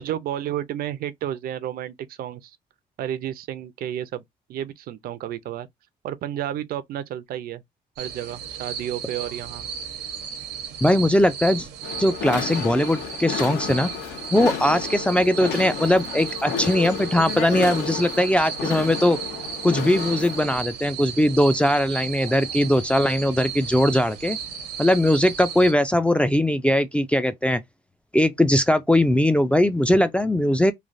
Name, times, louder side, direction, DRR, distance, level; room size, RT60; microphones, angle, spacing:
voice 1, 0.0-2.6 3.0-4.2 4.5-5.7 6.0-7.6 8.0-9.7, right 11 dB, 60° right, 0.5 m, -31 dB
sound 1, 8.0-25.7, right 7 dB, 85° right, 0.8 m, -35 dB
voice 2, 10.8-11.7 12.0-13.9 14.3-19.2 19.6-24.4 24.8-27.6 28.1-30.7, left 1 dB, 5° left, 0.3 m, -20 dB
sound 2, 11.8-20.6, left 7 dB, 75° left, 0.9 m, -32 dB
3.2 x 2.2 x 2.5 m
cardioid pair, 110°, 17 cm